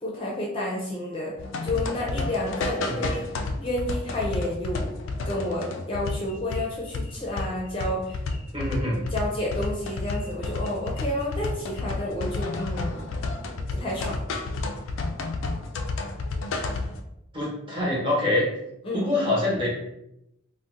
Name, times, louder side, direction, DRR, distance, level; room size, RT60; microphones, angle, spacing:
voice 1, 0.0-1.3 1.6-3.2 3.6-4.9 5.2-8.2 9.1-13.0 13.7-14.2 18.8-19.1, left 1 dB, 25° left, -3 dB, 0.5 m, -30 dB
sound 1, 1.4-17.0, left 3 dB, 80° left, 0.4 m, -31 dB
voice 2, 8.5-9.0 17.3-18.5 18.9-19.7, left 1 dB, 25° right, -5 dB, 1.0 m, -25 dB
2.6 x 2.1 x 3.7 m, 0.83 s
head